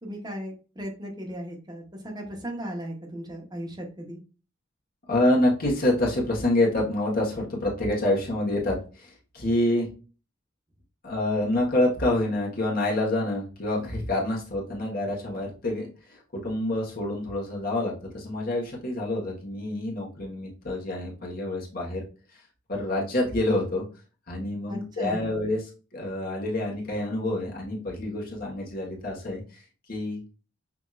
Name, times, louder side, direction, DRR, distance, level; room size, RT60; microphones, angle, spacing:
voice 1, 0.0-4.2 24.7-25.3, equal, 20° right, 0 dB, 1.1 m, -36 dB
voice 2, 5.1-9.9 11.0-22.0 22.7-23.8 24.3-25.6 25.9-29.6 29.9-30.2, left 1 dB, 50° left, -2 dB, 1.5 m, -27 dB
6.0 x 2.8 x 2.5 m, 0.35 s
head